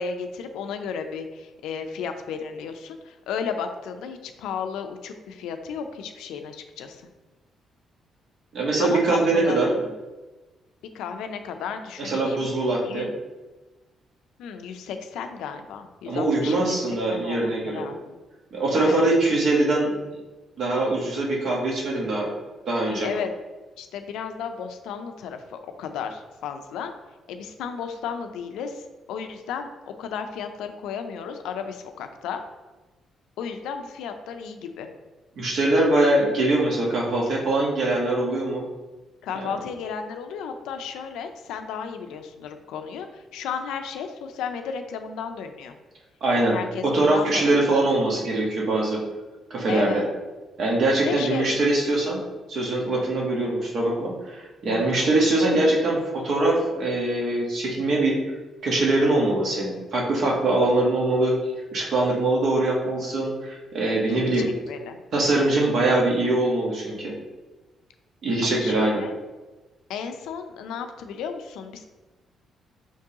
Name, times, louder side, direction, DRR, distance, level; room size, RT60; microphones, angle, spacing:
voice 1, 0.0-7.0 8.8-9.9 10.9-12.5 12.8-13.1 14.4-18.2 18.8-19.1 22.9-23.3 23.8-26.9 27.3-32.4 33.4-34.9 39.2-45.8 46.3-48.0 49.7-50.1 51.0-51.5 54.7-55.1 64.1-65.0 68.4-69.1 69.9-71.8, left 6 dB, 90° left, 7 dB, 0.4 m, -34 dB
voice 2, 8.5-9.7 12.0-13.1 16.1-17.8 18.5-19.9 20.6-22.3 22.7-23.1 35.4-38.6 46.2-46.5 46.8-49.0 49.5-50.1 50.6-52.2 52.5-58.1 58.6-61.3 61.7-64.5 65.1-67.1 68.2-69.0, right 2 dB, 65° right, -2 dB, 1.2 m, -22 dB
4.5 x 3.5 x 2.8 m, 1.2 s
cardioid pair, 90°, 0 cm